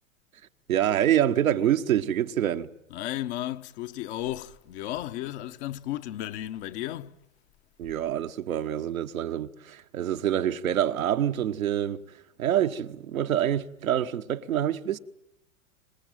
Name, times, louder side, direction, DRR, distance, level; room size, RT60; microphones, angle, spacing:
voice 1, 0.7-2.7 7.8-12.0 12.4-15.0, right 11 dB, 80° right, 1.2 m, -26 dB
voice 2, 2.9-7.1, left 13 dB, 55° left, 1.3 m, -34 dB
25.5 x 18.0 x 9.2 m
hypercardioid pair, 100°, 41 cm